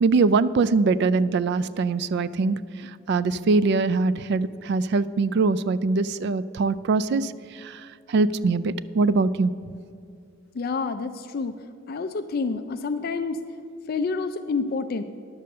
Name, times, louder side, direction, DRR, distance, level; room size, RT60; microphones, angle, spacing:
voice 1, 0.0-2.6 3.1-7.3 8.1-9.5, right 3 dB, 55° right, 17 dB, 0.3 m, -22 dB
voice 2, 10.5-11.5 11.9-13.4 13.9-15.0, left 4 dB, 45° left, 8 dB, 0.3 m, -28 dB
10.5 x 6.8 x 6.6 m, 2.4 s
head